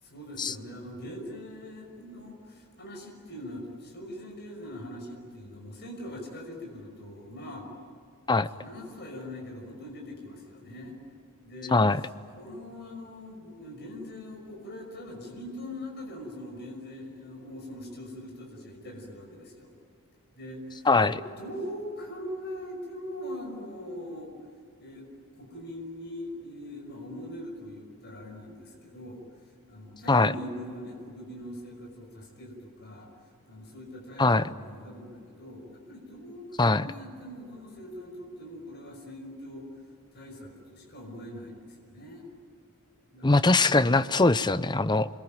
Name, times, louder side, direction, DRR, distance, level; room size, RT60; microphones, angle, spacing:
voice 1, 0.0-7.7 8.4-10.9 11.4-11.8 12.4-19.7 20.3-24.3 24.8-25.1 25.3-29.2 29.7-33.1 33.5-39.7 40.1-42.3 43.1-43.9, left 1 dB, 50° left, 1 dB, 5.8 m, -42 dB
voice 2, 43.2-45.1, left 3 dB, 20° left, 14 dB, 0.6 m, -21 dB
28.5 x 22.0 x 9.2 m, 2.4 s
head